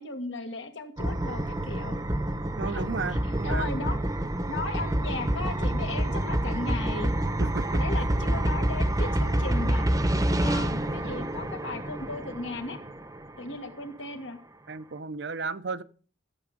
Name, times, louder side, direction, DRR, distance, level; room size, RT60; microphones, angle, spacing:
voice 1, 0.0-2.0 2.7-2.8 3.1-4.0 4.5-7.1 7.8-10.1 10.4-12.8 13.4-14.4, left 3 dB, 85° left, 1.8 m, -36 dB
sound 1, 1.0-13.7, right 1 dB, 20° right, 0.8 m, -28 dB
voice 2, 2.6-3.7 7.4-7.8 14.7-15.8, right 4 dB, 70° right, 0.6 m, -33 dB
14.0 x 8.0 x 5.1 m
head